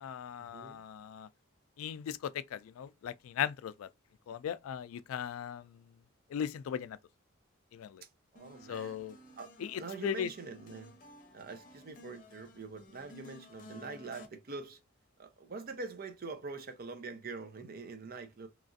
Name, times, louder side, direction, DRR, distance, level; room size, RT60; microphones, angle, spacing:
voice 1, 0.0-1.3 1.8-3.9 4.3-5.7 6.3-7.0 7.7-8.0 8.7-9.2 9.6-10.3, left 8 dB, 85° left, 0.3 m, -38 dB
voice 2, 0.5-0.8 8.0-9.0 9.4-9.5 9.8-10.9 11.3-14.8 15.2-18.5, right 4 dB, 45° right, 0.6 m, -44 dB
sound 1, 8.4-14.3, left 1 dB, 40° left, 0.7 m, -54 dB
3.0 x 2.4 x 2.5 m
head